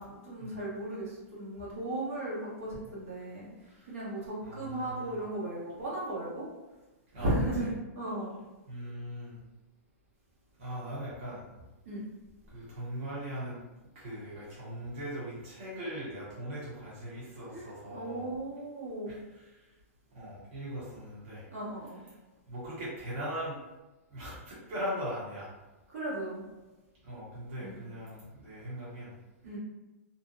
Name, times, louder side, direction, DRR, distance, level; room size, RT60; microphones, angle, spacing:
voice 1, 0.0-3.5 3.8-6.5 7.2-7.7 7.9-8.3 11.8-12.0 17.5-19.1 21.5-22.0 25.9-26.4 27.6-27.8 29.4-29.6, right 1 dB, 75° right, -8 dB, 1.2 m, -36 dB
voice 2, 4.4-5.2 7.1-7.3 8.7-9.4 10.6-11.4 12.4-13.6 13.9-18.3 19.1-19.7 20.1-21.5 22.5-23.6 24.1-25.5 27.0-29.1, equal, 50° right, -8 dB, 1.1 m, -40 dB
2.5 x 2.1 x 2.6 m, 1.1 s
hypercardioid pair, 140°, 8 cm